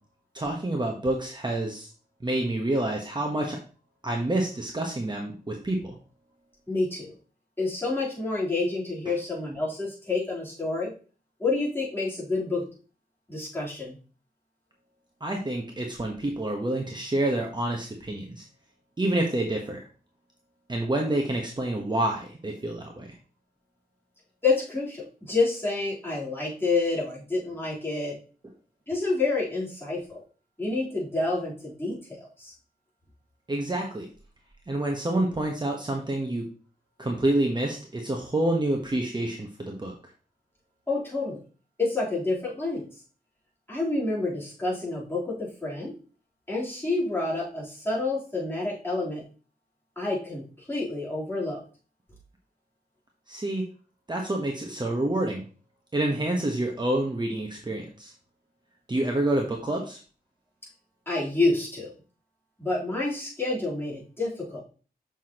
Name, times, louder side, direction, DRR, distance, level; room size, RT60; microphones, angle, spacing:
voice 1, 0.3-1.9 2.2-3.6 4.0-5.9 15.2-18.5 19.0-19.8 20.7-23.1 33.5-34.1 34.7-36.5 37.0-39.9 53.3-53.6 54.1-55.5 55.9-58.1 58.9-60.0, right 1 dB, 25° right, 1 dB, 1.0 m, -28 dB
voice 2, 6.7-7.1 7.6-10.9 11.4-12.7 13.3-14.0 24.4-28.2 28.9-30.2 30.6-32.5 40.9-41.4 41.8-42.9 43.7-45.9 46.5-49.2 50.0-51.6 61.1-61.9 62.6-64.6, left 3 dB, 15° left, -6 dB, 3.4 m, -28 dB
7.1 x 6.0 x 2.9 m, 0.38 s
wide cardioid pair, 90°, 16 cm